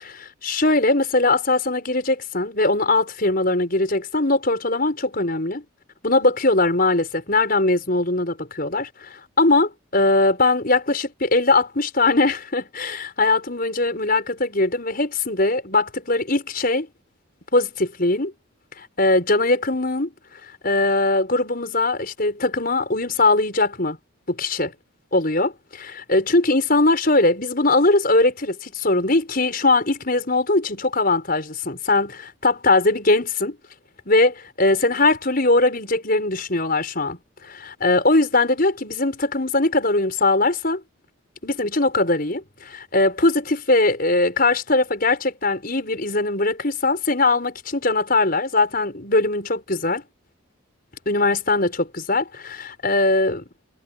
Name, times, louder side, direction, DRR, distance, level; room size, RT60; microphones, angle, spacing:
voice 1, 0.4-5.6 6.0-16.9 17.5-18.3 18.8-20.1 20.6-24.0 24.3-24.7 25.1-33.6 34.1-37.2 37.4-40.8 41.4-50.0 51.1-53.4, left 2 dB, 45° left, 6.2 m, -20 dB
head